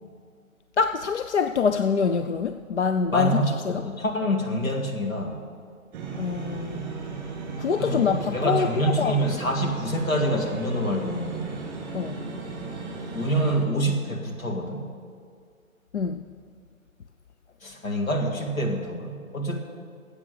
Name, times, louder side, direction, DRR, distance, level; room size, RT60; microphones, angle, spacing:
voice 1, 0.8-3.8 6.2-7.0 7.6-9.2 11.9-12.2 15.9-16.3, left 5 dB, 55° left, 9 dB, 0.5 m, -25 dB
voice 2, 3.1-5.4 7.8-11.6 13.1-14.8 17.6-19.6, equal, 70° left, 2 dB, 2.4 m, -26 dB
sound 1, 5.9-13.6, right 4 dB, 20° right, 2.3 m, -36 dB
12.5 x 8.2 x 7.8 m, 2.2 s
figure-of-eight pair, 145°, 42 cm